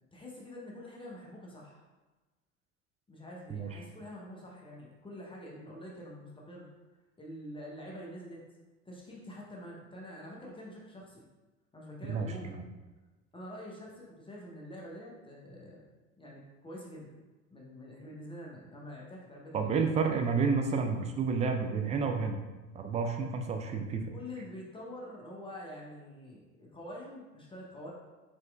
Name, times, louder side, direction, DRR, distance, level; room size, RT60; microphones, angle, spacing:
voice 1, 0.1-1.8 3.1-6.7 7.2-8.4 8.8-11.2 11.7-12.5 13.3-15.8 16.2-19.7 24.1-27.9, left 1 dB, 10° left, -3 dB, 0.9 m, -46 dB
voice 2, 12.1-12.6 19.5-22.4 22.7-24.0, right 5 dB, 15° right, 4 dB, 0.4 m, -30 dB
4.3 x 4.2 x 2.3 m, 1.2 s
figure-of-eight pair, 70°, 43 cm